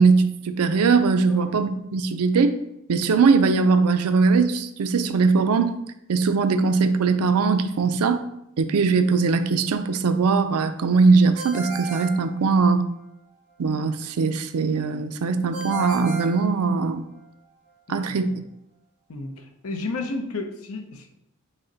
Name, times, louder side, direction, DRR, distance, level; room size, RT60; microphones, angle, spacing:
voice 1, 0.0-2.5 2.9-5.7 6.1-8.2 8.6-12.8 13.6-17.1 17.9-18.3, right 4 dB, 80° right, 9 dB, 0.4 m, -20 dB
Ringtone, 11.3-13.0 15.5-17.2, right 4 dB, 55° right, 1.8 m, -35 dB
voice 2, 17.9-18.3 19.1-21.1, left 3 dB, 70° left, 5 dB, 0.6 m, -33 dB
6.2 x 2.1 x 3.9 m, 0.79 s
head